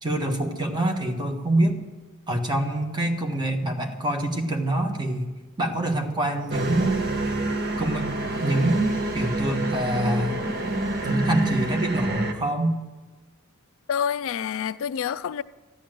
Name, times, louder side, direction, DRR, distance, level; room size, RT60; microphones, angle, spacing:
voice 1, 0.0-1.8 2.3-5.3 5.6-7.0 7.8-8.1 8.4-10.5 11.0-12.8, right 1 dB, 20° right, 1.5 m, -25 dB
sound 1, 6.5-12.3, right 2 dB, 50° right, 1.3 m, -27 dB
voice 2, 13.9-15.4, left 8 dB, 65° left, 0.4 m, -27 dB
14.0 x 10.0 x 7.7 m
head